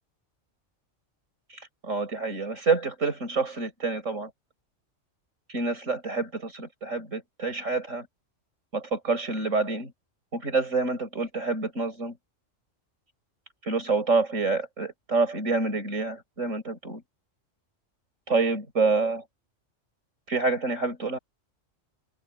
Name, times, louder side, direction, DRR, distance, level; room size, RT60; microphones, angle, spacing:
voice 1, 1.5-4.3 5.5-8.1 8.7-9.9 10.3-12.2 13.6-17.0 18.3-19.2 20.3-21.2, right 3 dB, 75° right, 6.2 m, -27 dB
omnidirectional pair, 1.3 m